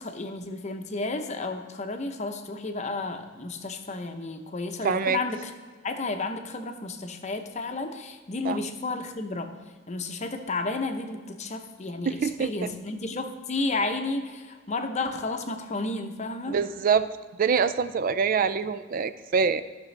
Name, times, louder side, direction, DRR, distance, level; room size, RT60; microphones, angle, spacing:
voice 1, 0.0-5.5 5.8-9.5 9.9-16.6, left 3 dB, 35° left, 6 dB, 0.7 m, -32 dB
voice 2, 4.8-5.2 8.4-8.6 12.0-12.7 16.5-17.1 17.4-19.6, right 6 dB, 45° right, 13 dB, 0.4 m, -25 dB
14.0 x 6.1 x 3.3 m, 1.5 s
head